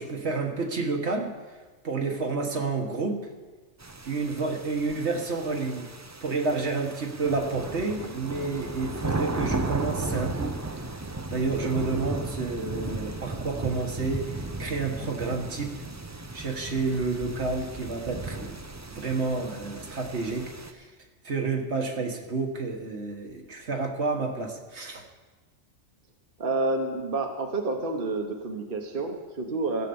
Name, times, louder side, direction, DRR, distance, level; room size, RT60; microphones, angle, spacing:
voice 1, 0.0-1.4 1.8-3.3 4.0-5.9 6.2-10.9 11.3-15.7 16.3-20.9 21.2-25.1, right 3 dB, 65° right, 2 dB, 1.7 m, -30 dB
sound 1, 3.8-20.7, right 2 dB, 20° right, 0.5 m, -35 dB
voice 2, 26.4-29.9, right 2 dB, 45° right, 3 dB, 1.2 m, -29 dB
15.0 x 8.2 x 7.0 m, 1.3 s
omnidirectional pair, 1.3 m